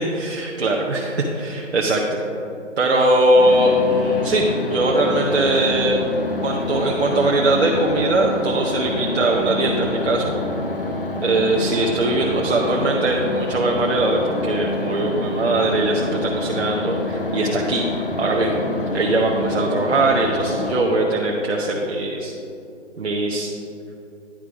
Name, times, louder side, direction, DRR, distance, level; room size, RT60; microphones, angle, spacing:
voice 1, 0.1-2.2 2.8-6.0 6.4-10.3 11.2-17.8 18.2-18.6 18.9-22.3 23.0-23.5, right 2 dB, 60° right, -1 dB, 0.8 m, -20 dB
sound 1, 3.3-20.8, left 2 dB, 50° left, 0.7 m, -27 dB
10.0 x 3.7 x 4.7 m, 2.7 s
hypercardioid pair, 170°, 37 cm